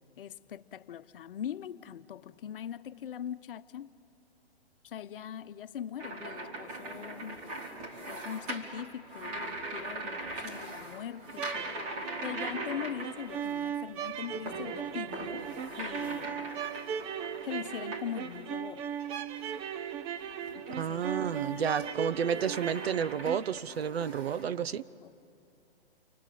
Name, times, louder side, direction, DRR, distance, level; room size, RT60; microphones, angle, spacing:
voice 1, 0.2-3.9 4.8-7.4 8.1-15.5 15.8-16.3 17.4-18.9 20.5-21.6 22.0-22.1 24.0-24.1 25.0-25.1, left 9 dB, 60° left, 1.0 m, -41 dB
sound 1, 6.0-13.6 14.0-18.5 19.0-19.6 20.2-24.4, right 1 dB, 40° right, 4.9 m, -41 dB
sound 2, 11.3-23.6, right 8 dB, 20° right, 0.6 m, -38 dB
voice 2, 20.8-24.8, right 7 dB, 70° right, 0.9 m, -31 dB
29.5 x 24.0 x 7.5 m
hypercardioid pair, 130°, 32 cm